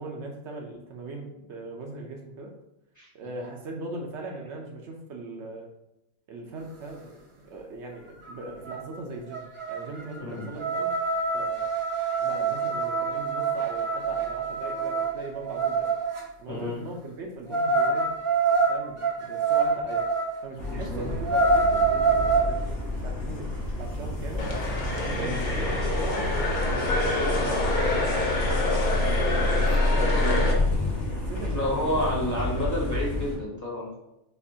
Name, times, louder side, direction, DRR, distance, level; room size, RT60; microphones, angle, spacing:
voice 1, 0.0-2.5 3.1-5.7 6.3-10.9 11.3-11.7 12.2-15.9 16.4-18.2 18.7-20.0 20.4-24.4 25.0-27.1 27.4-28.9 29.9-30.3 31.1-33.0, right 2 dB, 70° right, 1 dB, 1.0 m, -39 dB
sound 1, 8.3-8.4 8.6-9.0 9.3-16.2 17.5-20.3 20.7-20.8 21.1-22.5, right 4 dB, 35° right, 0.5 m, -25 dB
voice 2, 16.5-16.8 20.7-21.1 25.2-25.5 30.0-30.4 31.5-34.0, left 1 dB, 15° left, -3 dB, 0.9 m, -30 dB
sound 2, 20.6-33.3, left 1 dB, 70° left, 1.5 m, -28 dB
sound 3, 24.4-30.5, left 2 dB, 45° left, 0.8 m, -27 dB
6.6 x 2.5 x 2.7 m, 0.87 s
omnidirectional pair, 1.2 m